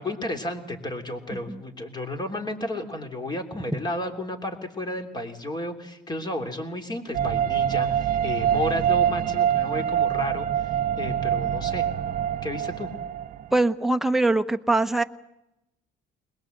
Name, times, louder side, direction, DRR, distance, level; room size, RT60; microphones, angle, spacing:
voice 1, 0.0-11.9 12.4-12.9, left 1 dB, 25° left, 5 dB, 3.1 m, -32 dB
sound 1, 7.1-13.6, right 9 dB, 55° right, 0.8 m, -25 dB
voice 2, 13.5-15.0, right 2 dB, ahead, 7 dB, 0.9 m, -22 dB
22.0 x 20.5 x 8.0 m, 0.91 s
cardioid pair, 110°, 17 cm